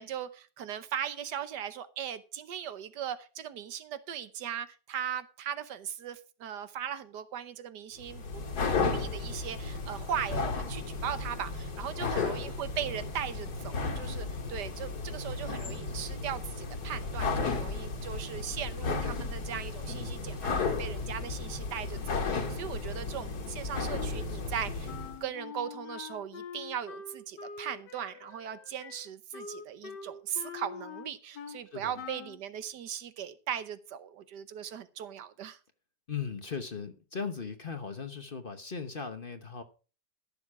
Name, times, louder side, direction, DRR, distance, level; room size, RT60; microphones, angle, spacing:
voice 1, 0.0-8.5 8.8-24.9 25.2-35.6, right 9 dB, 80° right, 1.5 m, -38 dB
sound 1, 8.0-25.2, left 4 dB, 70° left, 2.4 m, -34 dB
voice 2, 11.9-12.4 14.4-14.7 24.1-24.6 31.7-32.0 36.1-39.6, left 6 dB, 40° left, 1.1 m, -39 dB
Wind instrument woodwind instrument, 24.9-31.6 32.0-32.4, left 5 dB, 85° left, 1.8 m, -44 dB
14.5 x 7.2 x 4.8 m
omnidirectional pair, 1.8 m